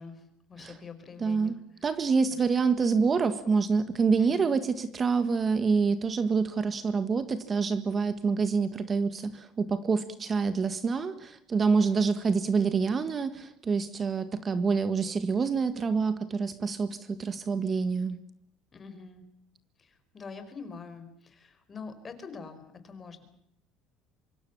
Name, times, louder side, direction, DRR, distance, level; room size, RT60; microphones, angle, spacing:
voice 1, 0.0-1.9 2.3-2.7 4.2-4.6 11.8-12.1 18.7-19.2 19.8-23.2, left 5 dB, 25° left, 10 dB, 4.9 m, -45 dB
voice 2, 1.2-1.5 1.8-18.2, right 5 dB, 30° right, 12 dB, 1.7 m, -27 dB
25.0 x 24.0 x 7.2 m, 0.75 s
cardioid pair, 125°, 0 cm